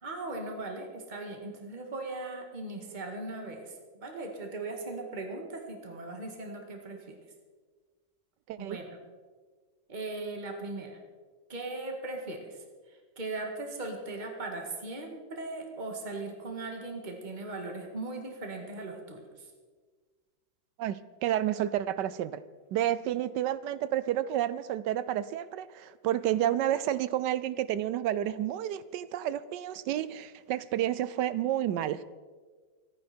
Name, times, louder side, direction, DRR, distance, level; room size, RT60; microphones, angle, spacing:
voice 1, 0.0-3.7 4.0-7.2 8.6-8.8 9.9-11.0 11.5-12.6 12.9-19.5, right 2 dB, 25° right, 2 dB, 2.0 m, -38 dB
voice 2, 20.8-22.4 22.7-32.0, right 12 dB, 75° right, 16 dB, 1.2 m, -30 dB
24.5 x 9.7 x 4.4 m, 1.5 s
omnidirectional pair, 1.9 m